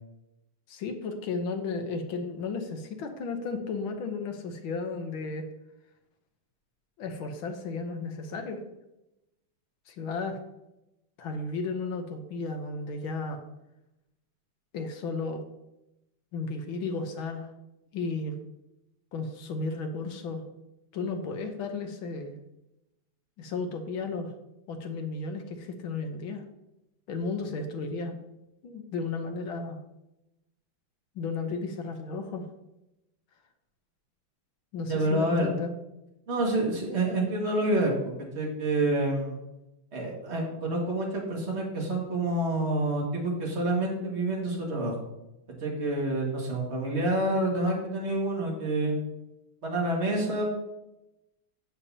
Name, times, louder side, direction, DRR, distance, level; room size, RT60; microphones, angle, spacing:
voice 1, 0.7-5.5 7.0-8.6 9.9-10.4 11.2-13.4 14.7-15.4 16.3-17.5 17.9-18.4 19.1-20.4 20.9-22.3 23.4-24.3 24.7-26.4 27.1-28.2 28.6-29.8 31.1-32.4 34.7-35.7, left 4 dB, 70° left, 5 dB, 1.7 m, -34 dB
voice 2, 34.9-35.5 36.3-39.4 39.9-44.9 45.6-49.0 49.6-50.4, right 1 dB, 30° right, -1 dB, 2.0 m, -28 dB
10.0 x 6.8 x 2.8 m, 0.91 s
omnidirectional pair, 2.4 m